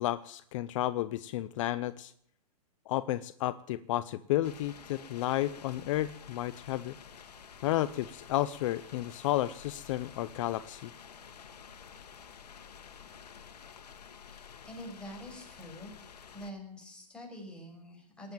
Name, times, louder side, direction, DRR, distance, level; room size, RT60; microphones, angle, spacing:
voice 1, 0.0-2.1 2.9-7.0 7.6-10.9, left 14 dB, 50° left, 16 dB, 0.7 m, -32 dB
sound 1, 4.4-16.5, left 7 dB, 90° left, 1.5 m, -51 dB
voice 2, 14.4-16.0 16.3-18.3, equal, 5° left, -1 dB, 6.2 m, -46 dB
19.0 x 8.1 x 9.0 m, 0.67 s
hypercardioid pair, 135°, 20 cm